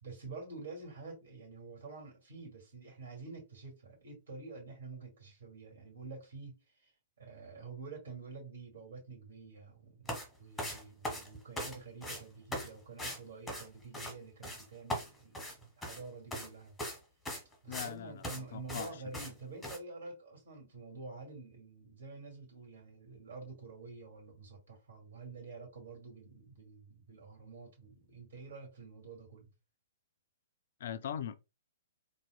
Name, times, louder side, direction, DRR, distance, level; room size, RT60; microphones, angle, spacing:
voice 1, 0.0-16.7 17.6-29.5, right 4 dB, 60° right, 2.1 m, -48 dB
sound 1, 10.1-10.3 10.6-11.8 12.0-12.2 12.5-12.7 13.0-13.2 13.5-14.1 14.4-14.6 14.9-16.0 16.3-16.5 16.8-17.0 17.3-17.9 18.2-18.4 18.7-18.9 19.1-19.3 19.6-19.8, equal, 5° left, 1.1 m, -39 dB
voice 2, 17.7-18.9 30.8-31.4, left 9 dB, 55° left, 0.3 m, -40 dB
4.0 x 2.6 x 2.2 m
figure-of-eight pair, 115°, 0 cm